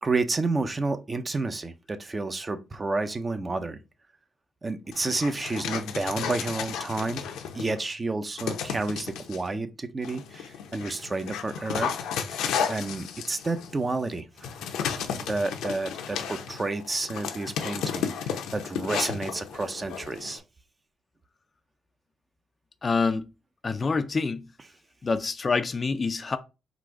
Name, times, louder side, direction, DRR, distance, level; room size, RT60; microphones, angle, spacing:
voice 1, 0.0-3.8 4.6-7.2 7.5-11.9 12.3-14.5 15.3-20.4, right 3 dB, 25° right, 0.5 m, -30 dB
Dog, 4.9-7.8 8.4-9.4 10.0-20.4, left 7 dB, 85° left, 0.7 m, -33 dB
voice 2, 22.8-23.3 23.6-24.5 25.0-26.4, left 4 dB, 35° left, 0.4 m, -26 dB
4.0 x 2.5 x 4.7 m
cardioid pair, 90°, 0 cm